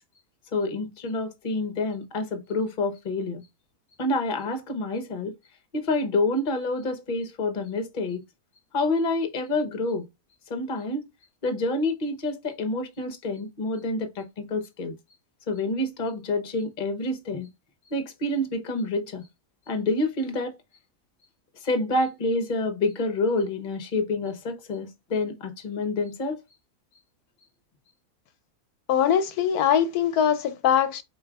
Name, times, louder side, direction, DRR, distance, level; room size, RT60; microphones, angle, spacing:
voice 1, 0.5-3.4 4.0-5.3 5.7-8.2 8.7-10.1 10.5-11.1 11.4-14.9 15.5-17.5 17.9-19.3 19.7-20.6 21.6-26.4, left 2 dB, 35° left, 0.9 m, -28 dB
voice 2, 28.9-31.0, left 9 dB, 75° left, 1.1 m, -22 dB
4.7 x 4.5 x 2.3 m
omnidirectional pair, 1.7 m